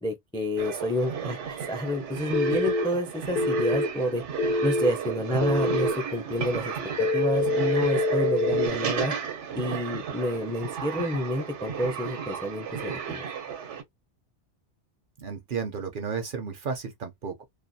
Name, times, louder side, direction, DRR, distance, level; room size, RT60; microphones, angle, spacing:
voice 1, 0.0-4.2 4.6-6.7 7.0-9.1 9.5-13.2, equal, 10° left, 0.3 m, -29 dB
sound 1, 0.6-13.8, right 7 dB, 80° right, 1.0 m, -34 dB
sound 2, 2.3-2.8 3.4-3.9 4.4-4.9 5.4-5.9 7.0-8.7, left 2 dB, 50° left, 0.6 m, -25 dB
voice 2, 15.2-17.4, right 5 dB, 55° right, 0.7 m, -33 dB
2.4 x 2.2 x 2.6 m
omnidirectional pair, 1.2 m